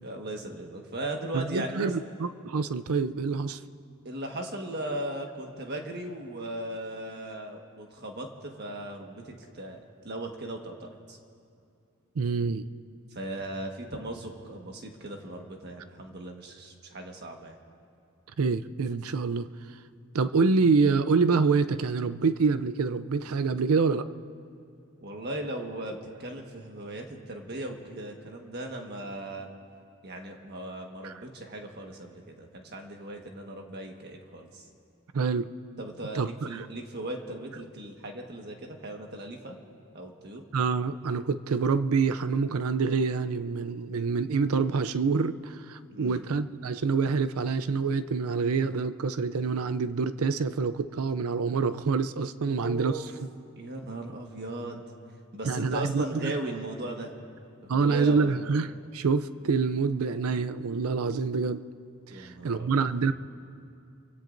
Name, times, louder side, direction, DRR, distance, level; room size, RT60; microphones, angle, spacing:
voice 1, 0.0-2.0 4.0-9.8 10.0-11.2 13.1-17.6 25.0-29.5 30.0-34.6 35.8-39.5 39.9-40.4 45.9-46.2 52.4-53.0 53.6-54.8 55.3-57.2 57.6-58.4 62.1-62.9, right 1 dB, 45° right, 2 dB, 1.5 m, -38 dB
voice 2, 1.3-3.6 12.2-12.7 18.4-19.5 20.1-24.0 31.0-31.1 35.1-35.5 36.1-36.7 40.5-53.0 55.4-56.3 57.7-61.6 62.1-63.1, right 4 dB, 75° right, 12 dB, 0.5 m, -26 dB
29.0 x 16.5 x 2.6 m, 2.5 s
head